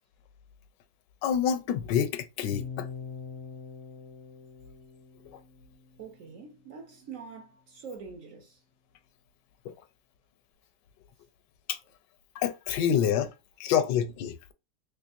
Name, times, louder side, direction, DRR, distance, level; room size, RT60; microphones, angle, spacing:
voice 1, 1.2-2.9 9.6-9.7 11.7-11.8 12.4-13.3 13.6-14.5, left 8 dB, 80° left, 1.2 m, -27 dB
sound 1, 2.5-6.6, left 6 dB, 60° left, 0.6 m, -43 dB
voice 2, 6.0-8.6, right 5 dB, 60° right, 1.0 m, -44 dB
3.4 x 3.2 x 2.4 m
omnidirectional pair, 1.9 m